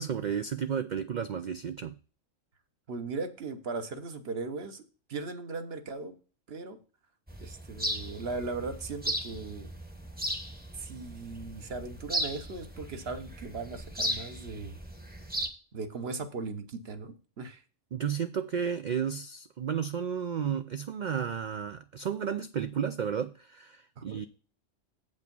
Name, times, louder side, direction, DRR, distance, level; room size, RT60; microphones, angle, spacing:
voice 1, 0.0-1.9 17.9-24.3, right 7 dB, 70° right, 11 dB, 0.4 m, -32 dB
voice 2, 2.9-4.8 5.1-6.1 6.5-6.8 7.4-9.7 10.7-14.8 15.7-17.6 24.0-24.2, right 3 dB, 55° right, 8 dB, 1.2 m, -38 dB
sound 1, 7.3-15.5, right 1 dB, 10° right, 0.9 m, -36 dB
8.1 x 5.4 x 5.3 m, 0.37 s
omnidirectional pair, 1.3 m